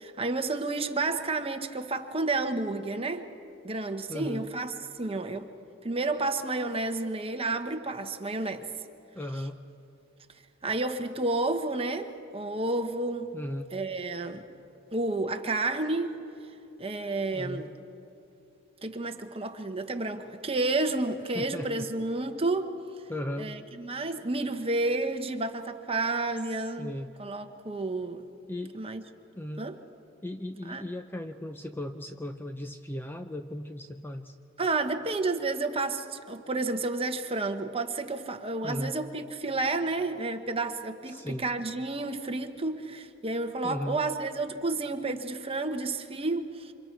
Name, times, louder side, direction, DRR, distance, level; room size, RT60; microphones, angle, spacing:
voice 1, 0.0-3.3 3.6-5.5 5.8-8.7 10.6-13.3 13.7-14.4 14.9-16.2 16.8-17.7 18.8-22.7 23.4-26.9 27.2-28.2 28.7-29.0 29.6-29.8 30.6-30.8 34.6-46.7, right 2 dB, 25° right, 1.1 m, -31 dB
voice 2, 4.1-4.5 9.1-9.6 13.3-13.7 17.3-17.7 21.3-21.9 23.1-23.5 26.8-27.1 28.5-28.8 29.4-29.7 30.2-34.3 38.6-39.0 41.1-41.5 43.6-44.0, left 1 dB, 10° left, 0.6 m, -36 dB
28.0 x 26.5 x 4.7 m
head